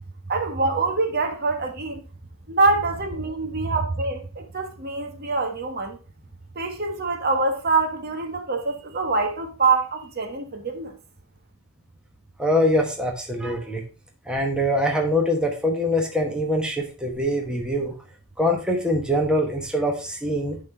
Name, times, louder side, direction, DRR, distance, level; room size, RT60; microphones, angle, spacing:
voice 1, 0.3-2.0 2.5-6.0 6.5-10.9, right 3 dB, 50° right, 1.3 m, -25 dB
voice 2, 12.4-13.8 14.3-17.9 18.4-20.6, equal, 5° right, 1.2 m, -23 dB
10.5 x 3.8 x 4.4 m
head